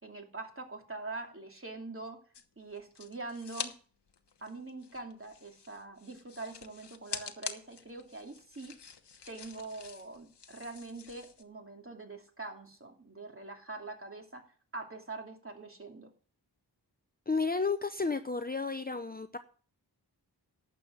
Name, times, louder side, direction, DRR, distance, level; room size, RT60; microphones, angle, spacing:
voice 1, 0.0-2.2 2.6-3.7 4.4-8.7 9.3-14.4 14.7-16.1, right 3 dB, 30° right, 2 dB, 2.9 m, -44 dB
sound 1, 2.3-3.7 4.1-11.4, left 6 dB, 75° left, 1.2 m, -45 dB
voice 2, 17.3-19.4, left 4 dB, 20° left, 9 dB, 0.7 m, -32 dB
12.0 x 7.7 x 7.2 m, 0.42 s
wide cardioid pair, 85°, 41 cm